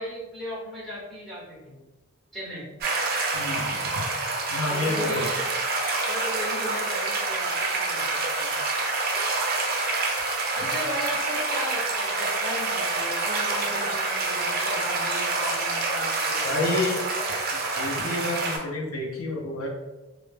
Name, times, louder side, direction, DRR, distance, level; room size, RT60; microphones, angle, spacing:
voice 1, 0.0-1.8 2.3-2.6 4.6-5.5 6.1-8.6 10.5-16.6, equal, ahead, -8 dB, 0.9 m, -36 dB
sound 1, 2.8-18.6, right 3 dB, 45° right, 0.4 m, -27 dB
voice 2, 3.3-3.9 4.5-5.3 10.6-10.7 16.4-17.0 17.7-19.7, left 2 dB, 75° left, -1 dB, 0.5 m, -29 dB
2.0 x 2.0 x 3.2 m, 1.1 s
head